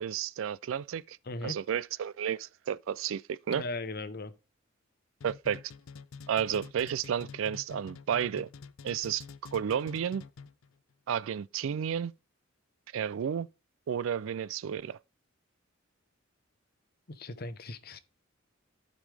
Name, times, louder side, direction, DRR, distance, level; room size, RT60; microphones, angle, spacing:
voice 1, 0.0-1.2 1.4-3.6 5.2-5.6 6.3-8.5 8.8-9.2 9.5-10.2 11.1-12.1 12.9-13.5 13.9-15.0, right 8 dB, 70° right, 0.3 m, -32 dB
voice 2, 1.3-1.6 3.5-4.3 17.1-18.0, left 2 dB, 50° left, 0.8 m, -38 dB
sound 1, 5.2-10.7, left 5 dB, 75° left, 0.5 m, -47 dB
14.5 x 5.2 x 3.4 m
head